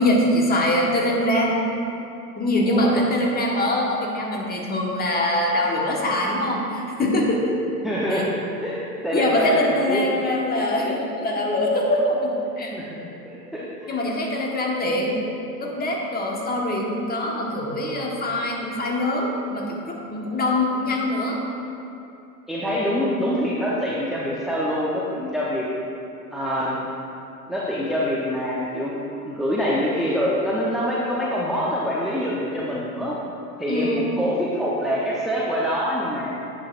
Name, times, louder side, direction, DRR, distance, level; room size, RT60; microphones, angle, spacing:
voice 1, 0.0-1.6 2.4-7.6 8.1-8.2 9.1-12.7 13.9-15.2 15.6-21.4 33.7-34.1, left 1 dB, 20° left, -1 dB, 1.4 m, -23 dB
voice 2, 7.8-8.3 8.6-10.0 12.7-13.0 13.2-14.0 22.5-25.7 26.3-26.8 27.5-29.0 29.2-33.2 33.6-36.3, equal, ahead, -7 dB, 0.8 m, -25 dB
10.5 x 8.2 x 2.5 m, 2.7 s
hypercardioid pair, 90°, 47 cm